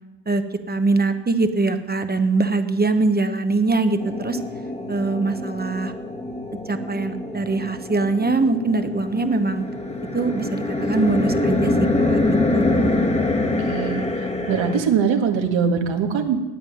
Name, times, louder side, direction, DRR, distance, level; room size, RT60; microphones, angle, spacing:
voice 1, 0.3-4.4 4.9-5.9 6.7-9.6 10.1-11.7 12.0-13.0, right 3 dB, 20° right, 8 dB, 1.0 m, -22 dB
sound 1, 4.0-14.8, left 2 dB, 15° left, 1.5 m, -25 dB
voice 2, 13.7-14.1 14.5-16.5, right 6 dB, 75° right, 3 dB, 1.9 m, -21 dB
9.6 x 8.8 x 9.3 m, 1.2 s
cardioid pair, 95°, 46 cm